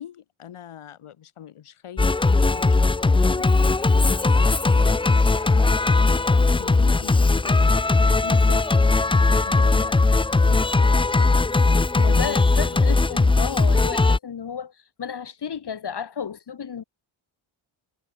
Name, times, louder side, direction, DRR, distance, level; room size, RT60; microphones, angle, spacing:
voice 1, 0.0-2.1 2.4-3.5 3.8-7.6 9.0-10.7 11.7-13.0, left 10 dB, 85° left, 2.2 m, -42 dB
Singing, 2.0-14.2, left 3 dB, 10° left, 0.4 m, -19 dB
voice 2, 8.2-8.9 12.0-14.7 15.0-16.8, left 7 dB, 55° left, 1.9 m, -33 dB
wide cardioid pair, 100°, 49 cm